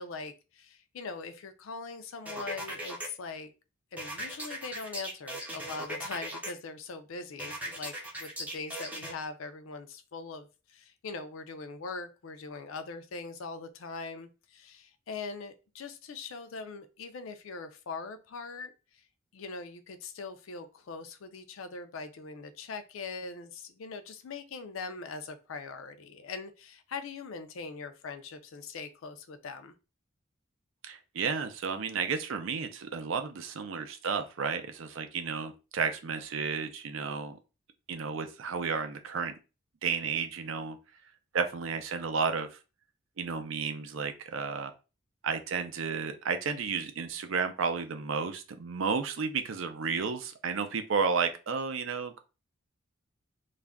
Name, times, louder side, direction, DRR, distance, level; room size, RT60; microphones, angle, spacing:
voice 1, 0.0-3.5 3.9-19.0 19.3-29.7, left 4 dB, 75° left, 9 dB, 0.4 m, -41 dB
sound 1, 2.3-3.1 4.0-6.5 7.4-9.1, right 1 dB, 5° right, 0.5 m, -38 dB
voice 2, 30.9-37.4 37.9-39.3 39.8-40.8 41.3-42.6 43.2-44.7 45.2-52.2, right 5 dB, 70° right, 8 dB, 0.4 m, -32 dB
2.4 x 2.1 x 3.4 m, 0.31 s
head